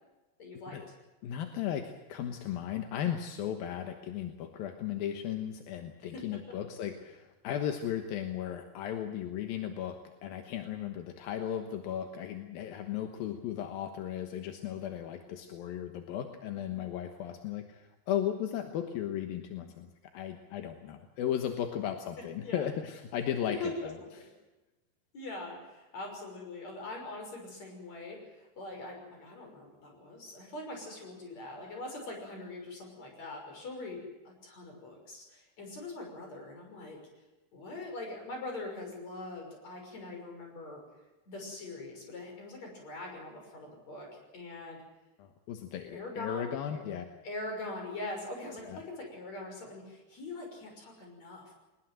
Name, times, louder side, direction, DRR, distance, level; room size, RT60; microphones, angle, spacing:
voice 1, 0.4-0.8 6.1-6.4 22.4-22.7 23.5-24.3 25.1-37.0 37.5-40.8 41.3-44.8 45.9-46.8 47.2-51.5, left 2 dB, 35° left, 2 dB, 6.9 m, -42 dB
voice 2, 1.2-19.9 20.1-23.6 23.8-24.2 45.2-47.1 48.7-48.8, left 10 dB, 65° left, 6 dB, 2.6 m, -36 dB
22.5 x 20.5 x 7.6 m, 1.1 s
omnidirectional pair, 5.4 m